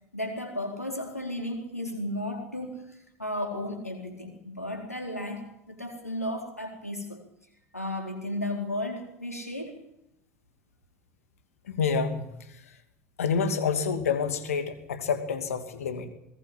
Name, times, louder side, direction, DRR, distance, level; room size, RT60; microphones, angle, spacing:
voice 1, 0.1-7.2 7.7-9.8, left 1 dB, 85° left, 4 dB, 4.1 m, -34 dB
voice 2, 11.6-12.8 13.2-16.1, left 6 dB, 70° left, 9 dB, 2.6 m, -28 dB
22.0 x 19.0 x 7.6 m, 0.85 s
figure-of-eight pair, 75°, 8 cm